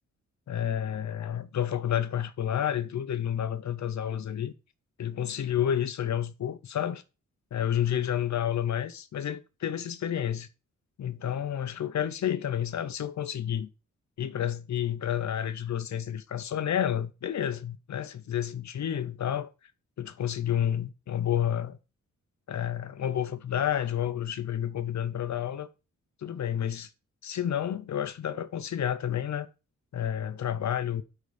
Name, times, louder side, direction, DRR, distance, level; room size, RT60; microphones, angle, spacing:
voice 1, 0.5-4.5 5.0-7.0 7.5-10.5 11.0-13.7 14.2-19.5 20.0-21.8 22.5-25.7 26.2-26.9 27.2-29.5 29.9-31.0, left 10 dB, 70° left, 0.8 m, -30 dB
9.3 x 4.0 x 5.1 m
wide cardioid pair, 170°, 29 cm